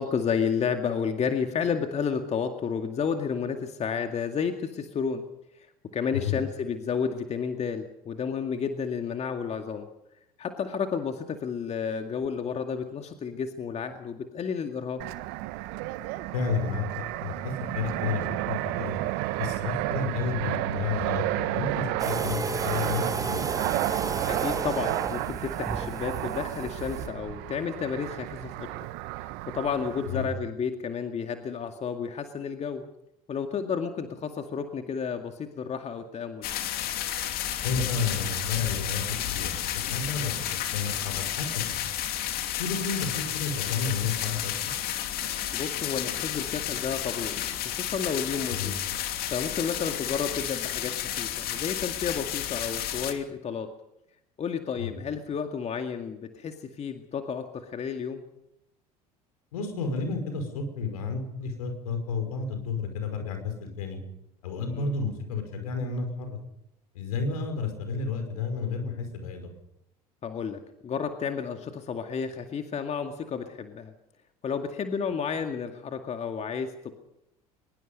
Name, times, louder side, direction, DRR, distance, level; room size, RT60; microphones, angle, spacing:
voice 1, 0.0-5.2 5.9-9.9 10.4-15.0 24.2-28.7 29.2-32.8 33.3-36.5 45.5-47.4 47.7-48.8 49.3-53.7 54.4-58.2 64.7-64.9 70.2-73.9 74.4-76.9, left 6 dB, 35° left, 6 dB, 2.1 m, -31 dB
Fixed-wing aircraft airplane, 15.0-30.3, right 17 dB, 60° right, 1.3 m, -32 dB
voice 2, 16.3-18.9 19.4-23.4 30.1-30.3 37.6-40.3 40.7-41.9 42.6-44.5 48.5-48.7 54.8-54.9 59.5-64.0 64.4-66.4 67.0-69.5, left 5 dB, 75° left, 7 dB, 5.3 m, -31 dB
sound 1, 22.0-27.1, right 4 dB, 20° right, 1.7 m, -33 dB
sound 2, 36.4-53.1, left 11 dB, 55° left, 2.8 m, -32 dB
23.5 x 21.5 x 5.4 m, 0.82 s
figure-of-eight pair, 65°, 19 cm